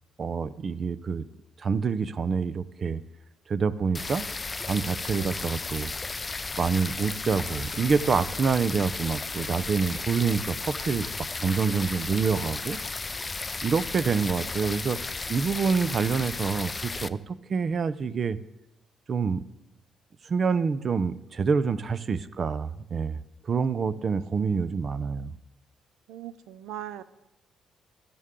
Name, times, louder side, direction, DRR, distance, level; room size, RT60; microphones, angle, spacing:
voice 1, 0.2-1.2 1.6-3.0 3.5-4.3 4.6-5.9 6.6-11.1 11.4-12.8 13.6-15.0 15.3-18.4 19.1-19.4 20.2-23.2 23.4-25.3, right 5 dB, 45° right, 17 dB, 0.6 m, -27 dB
sound 1, 3.9-17.1, left 3 dB, 25° left, 0.5 m, -34 dB
voice 2, 5.2-5.6 24.4-24.8 26.1-27.0, right 11 dB, 90° right, 15 dB, 0.6 m, -43 dB
sound 2, 7.2-13.7, right 1 dB, 30° right, 4.7 m, -56 dB
16.0 x 12.5 x 3.7 m, 0.89 s
cardioid pair, 90°, 0 cm